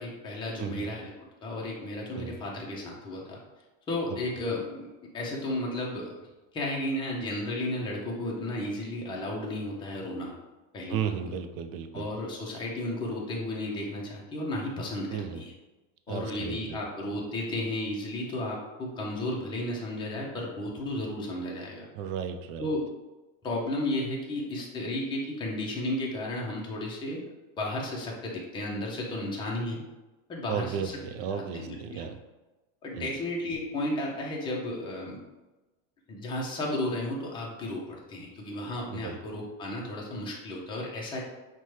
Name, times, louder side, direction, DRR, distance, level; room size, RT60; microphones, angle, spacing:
voice 1, 0.0-3.4 3.9-6.1 6.5-10.3 10.7-11.1 11.9-15.5 16.1-21.8 22.6-22.9 23.4-27.2 27.6-29.8 30.3-31.0 31.3-32.1 32.8-35.2 36.1-41.2, left 1 dB, 15° left, -3 dB, 0.5 m, -33 dB
voice 2, 10.9-12.1 15.1-15.4 16.1-16.8 21.9-22.7 30.5-32.2 32.9-33.1 38.9-39.2, right 7 dB, 85° right, 8 dB, 0.5 m, -34 dB
5.6 x 2.2 x 3.1 m, 1.1 s
cardioid pair, 165°, 39 cm